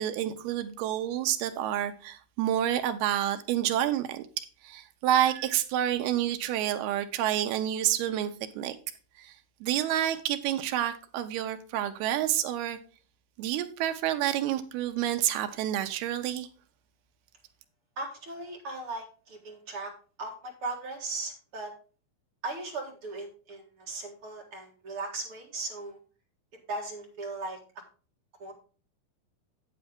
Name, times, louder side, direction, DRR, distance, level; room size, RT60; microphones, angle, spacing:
voice 1, 0.0-8.3 8.6-8.8 9.2-9.4 9.6-12.8 13.4-16.5, right 11 dB, 80° right, 2.6 m, -29 dB
voice 2, 18.0-19.9 20.2-21.7 22.4-26.0 26.7-27.6 28.4-28.5, right 3 dB, 45° right, 1.9 m, -37 dB
8.9 x 8.5 x 3.5 m
omnidirectional pair, 4.8 m